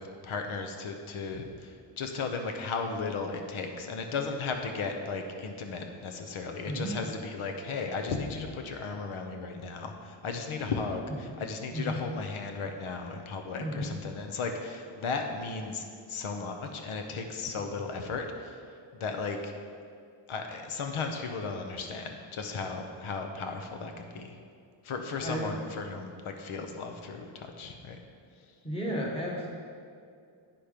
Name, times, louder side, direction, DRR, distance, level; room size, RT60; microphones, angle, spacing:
voice 1, 0.0-18.6 18.9-19.5 20.3-24.4 24.8-28.0, left 4 dB, 90° left, 5 dB, 0.9 m, -35 dB
voice 2, 25.2-25.5 28.6-29.5, equal, 10° left, -3 dB, 1.5 m, -33 dB
8.8 x 5.9 x 5.0 m, 2.4 s
wide cardioid pair, 160°, 48 cm